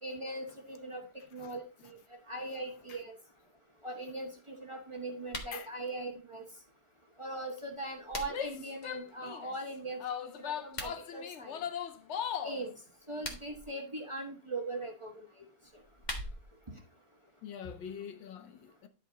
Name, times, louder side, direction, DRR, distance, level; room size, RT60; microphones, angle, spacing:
voice 1, 0.0-2.0 2.3-3.2 3.8-6.4 7.2-11.6 12.4-12.7 13.1-15.3, right 2 dB, 20° right, 1.2 m, -40 dB
sound 1, 5.2-5.6 7.6-8.6 10.6-11.0 13.0-13.6 15.6-16.6, left 1 dB, 25° left, 1.5 m, -42 dB
Female speech woman speaking / Yell, 8.3-9.5 10.0-12.6, left 8 dB, 70° left, 0.6 m, -38 dB
voice 2, 17.4-18.9, left 8 dB, 85° left, 1.6 m, -45 dB
10.5 x 5.3 x 3.9 m
omnidirectional pair, 2.0 m